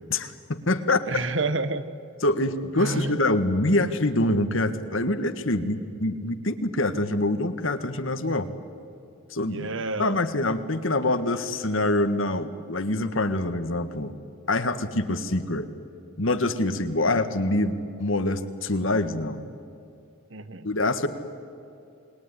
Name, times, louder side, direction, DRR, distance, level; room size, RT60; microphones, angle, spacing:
voice 1, 0.1-1.0 2.2-8.5 9.3-9.7 10.0-14.1 14.5-15.7 16.2-19.4 20.6-21.1, left 2 dB, 70° left, 10 dB, 1.7 m, -25 dB
voice 2, 1.1-1.8 2.8-3.2 9.4-10.2 20.3-20.7, right 3 dB, 60° right, 13 dB, 1.3 m, -29 dB
28.0 x 21.5 x 9.9 m, 2.6 s
head